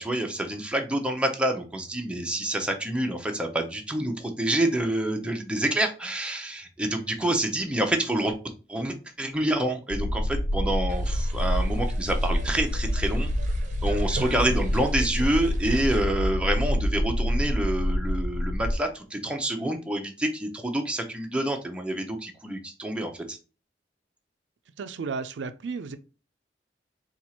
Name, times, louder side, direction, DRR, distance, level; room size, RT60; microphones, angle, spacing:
voice 1, 0.0-8.4 8.7-13.3 13.8-23.4, right 1 dB, 5° right, 0.6 m, -27 dB
sound 1, 9.9-18.8, equal, 75° left, 0.6 m, -27 dB
sound 2, 10.9-16.0, right 3 dB, 45° right, 0.7 m, -43 dB
voice 2, 14.3-14.6 24.8-26.0, right 4 dB, 85° right, 0.4 m, -34 dB
4.4 x 2.4 x 4.2 m
head